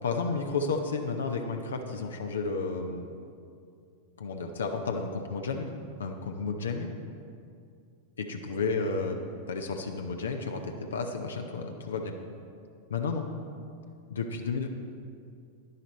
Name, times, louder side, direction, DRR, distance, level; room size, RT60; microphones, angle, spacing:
voice 1, 0.0-3.2 4.2-5.7 6.0-6.9 8.2-9.2 9.5-12.1 12.9-13.3 14.1-14.7, left 4 dB, 65° left, 4 dB, 0.7 m, -32 dB
11.0 x 10.5 x 4.1 m, 2.4 s
figure-of-eight pair, 90°, 0 cm